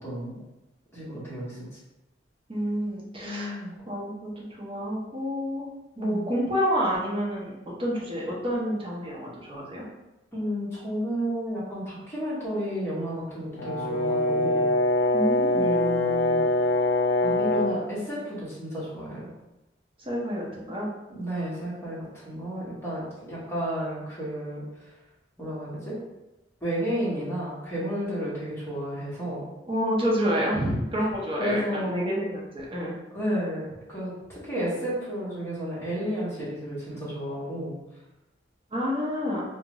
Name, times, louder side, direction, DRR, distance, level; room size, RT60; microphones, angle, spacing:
voice 1, 0.0-0.4 0.9-1.6 3.2-3.7 6.0-6.3 10.3-14.7 15.5-16.5 17.2-19.3 21.1-24.9 25.4-26.0 26.6-29.5 31.4-32.1 33.1-37.8, equal, 15° left, -8 dB, 1.1 m, -32 dB
voice 2, 2.5-3.6 3.9-5.7 6.0-9.9 15.1-15.8 20.0-20.9 29.7-32.9 38.7-39.4, equal, 30° right, -5 dB, 0.7 m, -29 dB
Brass instrument, 13.6-17.8, left 1 dB, 75° left, 0.4 m, -23 dB
2.5 x 2.4 x 3.0 m, 0.99 s
head